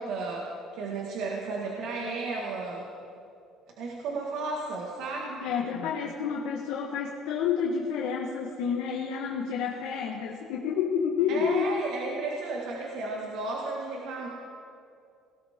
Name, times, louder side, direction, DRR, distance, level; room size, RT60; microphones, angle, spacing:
voice 1, 0.0-2.9 3.8-5.4 11.3-14.3, right 3 dB, 70° right, -2 dB, 1.8 m, -33 dB
voice 2, 5.4-11.7, left 7 dB, 90° left, -2 dB, 1.4 m, -29 dB
18.5 x 17.5 x 3.7 m, 2.5 s
cardioid pair, 160°, 0 cm